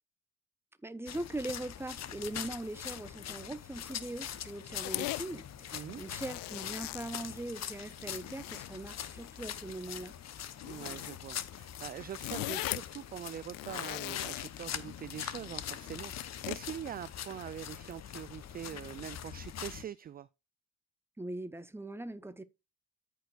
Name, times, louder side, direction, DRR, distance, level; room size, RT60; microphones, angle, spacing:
voice 1, 0.8-10.1 21.2-22.4, right 2 dB, 5° right, 0.9 m, -41 dB
sound 1, 1.1-19.8, left 10 dB, 40° left, 0.9 m, -43 dB
sound 2, 4.8-5.2 5.9-7.7 8.0-8.7 9.2-9.5 10.6-11.2 11.5-11.6 11.9-12.9 13.4-14.6 15.9-16.6, left 18 dB, 55° left, 0.5 m, -39 dB
voice 2, 5.7-6.0 10.6-16.1 16.5-20.3, right 10 dB, 25° right, 0.3 m, -43 dB
14.0 x 4.8 x 2.4 m
hypercardioid pair, 55°, 41 cm